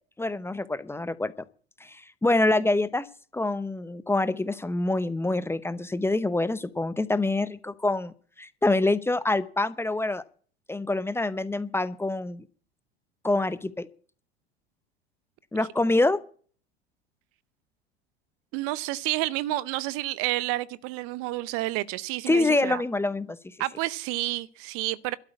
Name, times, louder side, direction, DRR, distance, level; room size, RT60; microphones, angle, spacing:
voice 1, 0.2-1.3 1.8-3.1 3.3-10.2 10.7-12.4 13.2-13.9 15.5-16.2 22.3-23.4, left 2 dB, 5° left, 0.8 m, -26 dB
voice 2, 18.5-22.8 23.6-25.2, right 17 dB, 45° right, 0.7 m, -30 dB
12.5 x 8.9 x 8.1 m
figure-of-eight pair, 80°, 33 cm